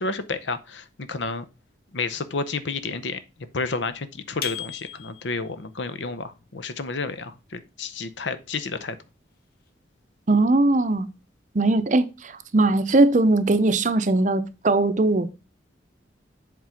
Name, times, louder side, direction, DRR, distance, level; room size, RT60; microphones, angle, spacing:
voice 1, 0.0-1.4 1.9-3.2 3.5-9.0, left 3 dB, 80° left, 0.8 m, -31 dB
sound 1, 4.4-5.5, left 9 dB, 55° left, 1.1 m, -34 dB
voice 2, 10.3-11.1 11.5-15.3, right 2 dB, 40° right, 0.6 m, -20 dB
7.6 x 3.8 x 5.6 m
head